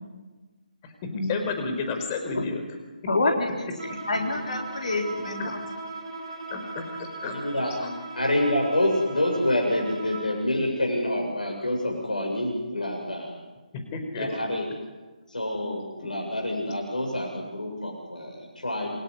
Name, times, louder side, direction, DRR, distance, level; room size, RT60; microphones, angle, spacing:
voice 1, 1.2-2.6 5.4-5.5 6.5-7.3 7.7-7.9 13.9-14.3, left 4 dB, 25° left, 6 dB, 4.8 m, -31 dB
voice 2, 3.1-3.7 4.1-5.5, left 2 dB, 55° left, 2 dB, 3.9 m, -27 dB
Bowed string instrument, 3.8-10.4, right 2 dB, 40° right, 6.8 m, -38 dB
voice 3, 7.3-7.7 8.1-13.3 14.2-14.7 15.3-18.9, left 1 dB, 70° left, 0 dB, 7.4 m, -27 dB
28.5 x 20.5 x 9.8 m, 1.3 s
figure-of-eight pair, 145°, 4 cm